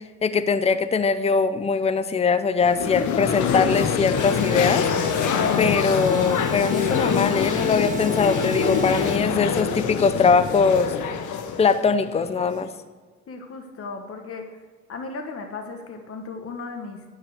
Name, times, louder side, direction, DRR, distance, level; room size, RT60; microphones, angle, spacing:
voice 1, 0.2-4.9 5.6-10.9 11.6-12.7, left 5 dB, 20° left, 12 dB, 0.6 m, -21 dB
sound 1, 2.6-12.6, left 7 dB, 80° left, 0.9 m, -25 dB
sound 2, 4.2-9.2, equal, 25° right, 1.4 m, -33 dB
voice 2, 13.3-14.4 14.9-17.0, left 4 dB, 50° left, 4 dB, 1.3 m, -36 dB
10.0 x 5.8 x 6.5 m, 1.5 s
cardioid pair, 90°, 30 cm